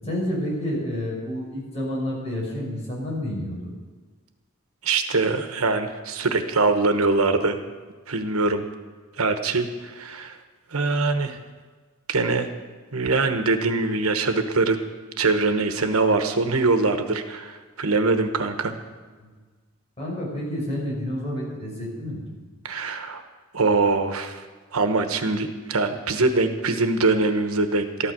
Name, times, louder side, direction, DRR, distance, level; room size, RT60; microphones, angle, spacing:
voice 1, 0.0-3.7 19.2-19.3 20.0-22.3, equal, 30° left, -4 dB, 5.9 m, -29 dB
voice 2, 4.8-7.6 8.1-8.6 9.2-10.4 10.7-11.4 12.1-12.5 12.9-14.8 15.2-18.7 22.6-23.2 23.5-24.4 24.7-28.1, right 3 dB, 90° right, 7 dB, 1.2 m, -23 dB
14.0 x 11.5 x 6.2 m, 1.4 s
head